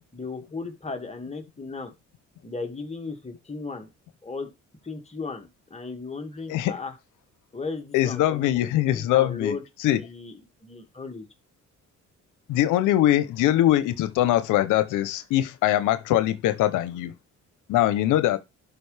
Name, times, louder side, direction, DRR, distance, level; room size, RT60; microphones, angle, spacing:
voice 1, 0.1-1.9 2.4-3.9 4.2-4.5 4.8-6.9 7.5-8.5 8.9-9.6 9.9-11.3, left 4 dB, 20° left, 1.9 m, -35 dB
voice 2, 7.9-10.0 12.5-17.1 17.7-18.4, left 13 dB, 90° left, 0.7 m, -22 dB
11.5 x 5.0 x 3.3 m
cardioid pair, 90°, 30 cm